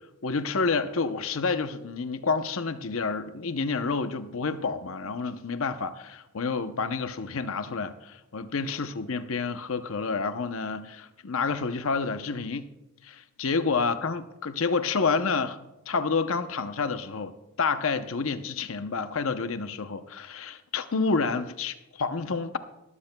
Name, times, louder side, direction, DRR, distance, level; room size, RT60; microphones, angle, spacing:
voice 1, 0.2-12.7 13.0-22.6, left 4 dB, 70° left, 0.7 m, -29 dB
20.5 x 14.0 x 2.2 m
head